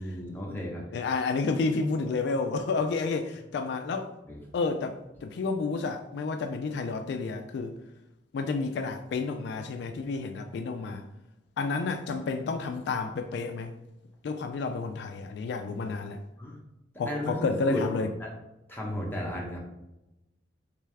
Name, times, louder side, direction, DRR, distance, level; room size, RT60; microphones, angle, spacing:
voice 1, 0.0-1.0 4.2-4.4 16.4-16.6 17.1-18.3 18.7-19.6, left 1 dB, 10° left, -2 dB, 0.8 m, -34 dB
voice 2, 0.9-4.1 4.5-7.8 8.3-11.1 11.6-13.7 14.2-16.2 17.0-18.1, left 4 dB, 65° left, 7 dB, 0.3 m, -30 dB
3.4 x 3.2 x 3.3 m, 0.93 s
head